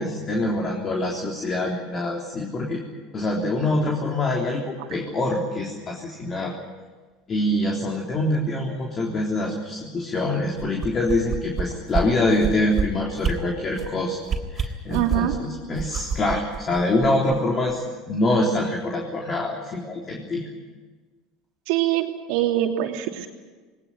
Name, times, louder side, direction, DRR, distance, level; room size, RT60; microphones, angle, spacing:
voice 1, 0.0-2.8 3.1-6.5 7.3-14.2 14.5-20.5, left 1 dB, 35° left, -1 dB, 3.6 m, -25 dB
sound 1, 10.6-11.6 11.9-12.0 12.4-12.8 13.2-13.3 13.7-13.9 14.2-15.4 15.8-17.4 17.7-17.8, right 6 dB, 35° right, 3.7 m, -26 dB
voice 2, 14.9-15.4 21.7-23.3, right 12 dB, 70° right, 3 dB, 2.9 m, -24 dB
20.0 x 18.5 x 10.0 m, 1.4 s
hypercardioid pair, 85°, 0 cm